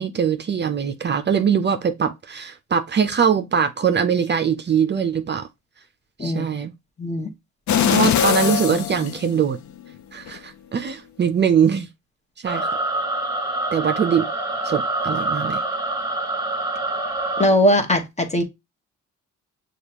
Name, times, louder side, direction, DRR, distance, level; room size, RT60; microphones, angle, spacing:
voice 1, 0.0-5.5 6.2-6.7 7.8-9.6 10.1-11.9 12.4-12.7 13.7-14.3 14.6-15.6, right 7 dB, 35° right, 0.6 m, -22 dB
voice 2, 7.0-7.3 17.4-18.4, equal, 20° left, 1.1 m, -19 dB
sound 1, 7.7-9.8 10.3-10.4, left 9 dB, 70° left, 0.6 m, -21 dB
sound 2, 12.5-17.5, right 2 dB, 10° right, 1.3 m, -26 dB
6.5 x 2.4 x 2.9 m
cardioid pair, 90°, 30 cm